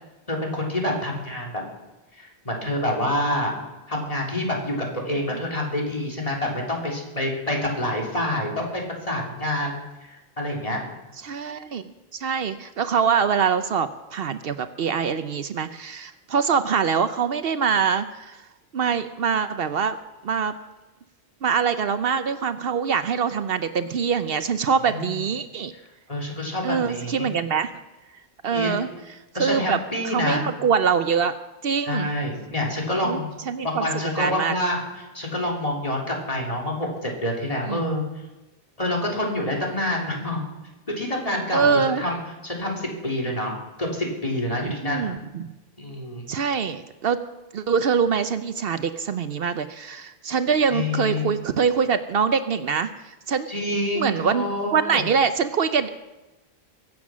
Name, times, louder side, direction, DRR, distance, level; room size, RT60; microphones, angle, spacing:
voice 1, 0.3-1.6 2.2-3.6 3.9-9.8 10.1-10.8 24.9-25.0 26.1-27.3 28.5-28.7 29.3-30.5 31.8-33.3 33.6-38.0 38.8-40.4 40.9-45.1 45.8-46.3 50.7-51.3 53.5-55.0, left 1 dB, 35° left, 0 dB, 3.3 m, -27 dB
voice 2, 11.2-18.4 18.7-20.0 20.2-20.5 21.4-25.7 26.6-27.7 28.4-28.9 29.3-29.8 30.0-31.3 31.6-32.1 33.0-33.2 33.5-34.5 37.7-38.0 41.5-42.0 44.6-45.5 46.3-47.2 47.5-53.5 54.0-54.4 54.7-55.9, right 6 dB, 65° right, 11 dB, 0.9 m, -24 dB
23.0 x 7.8 x 6.2 m, 1.1 s
omnidirectional pair, 1.1 m